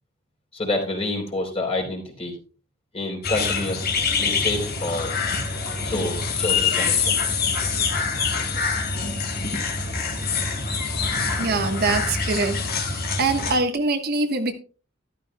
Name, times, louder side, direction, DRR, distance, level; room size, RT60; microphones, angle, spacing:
voice 1, 0.5-2.4 2.9-3.9 4.2-5.2 5.8-7.1 10.3-10.4 11.1-11.5, left 2 dB, 30° left, 3.7 m, -28 dB
sound 1, 3.2-13.6, left 5 dB, 50° left, 2.2 m, -25 dB
voice 2, 10.8-12.6 12.9-14.5, right 3 dB, 50° right, 1.2 m, -24 dB
13.5 x 12.0 x 2.2 m
head